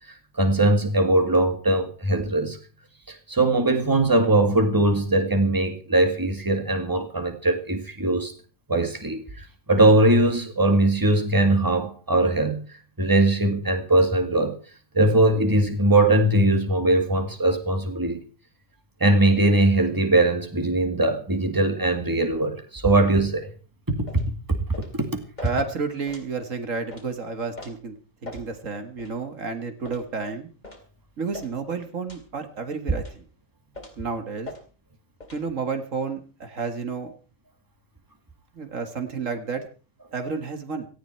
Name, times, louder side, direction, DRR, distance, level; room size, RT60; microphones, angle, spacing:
voice 1, 0.4-2.6 3.1-8.3 8.7-9.2 9.7-12.6 13.0-14.5 14.9-18.2 19.0-23.5 23.9-24.2 24.9-25.1, right 2 dB, 15° right, 6 dB, 2.1 m, -20 dB
sound 1, 24.1-24.3 24.7-24.9 25.4-25.5 26.1-26.3 26.9-27.1 27.6-27.7 28.2-28.5 29.0-29.1 29.8-30.1 30.6-30.9 31.3-31.5 32.1-32.3 32.9-33.2 33.7-34.0 34.4-34.6 35.2-35.4, left 2 dB, 35° left, 3.6 m, -41 dB
voice 2, 25.4-28.0 28.2-30.5 31.2-33.2 34.0-34.5 35.3-37.1 38.6-39.7 40.1-40.9, right 4 dB, 75° right, 8 dB, 2.1 m, -31 dB
17.5 x 14.5 x 4.5 m, 0.36 s
omnidirectional pair, 1.4 m